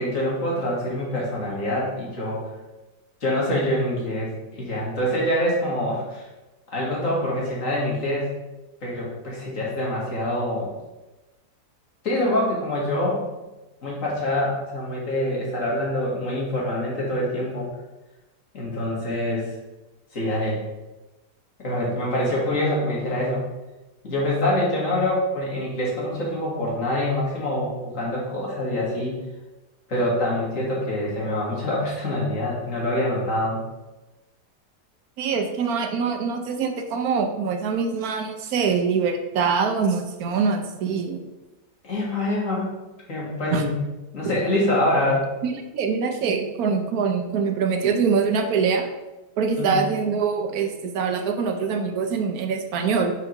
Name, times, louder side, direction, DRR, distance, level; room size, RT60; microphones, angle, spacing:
voice 1, 0.0-2.5 3.2-6.3 6.7-8.3 8.8-10.7 12.0-13.2 13.8-17.7 18.5-19.5 20.1-20.6 21.6-23.4 24.0-29.2 29.9-33.6 41.8-42.7 43.1-43.7 44.1-45.3 49.6-49.8, left 1 dB, 50° left, -4 dB, 2.2 m, -25 dB
voice 2, 35.2-41.2 43.5-43.6 44.2-44.3 45.4-48.9 49.4-53.1, right 5 dB, 70° right, 6 dB, 1.2 m, -24 dB
4.9 x 4.7 x 5.3 m, 1.1 s
omnidirectional pair, 1.7 m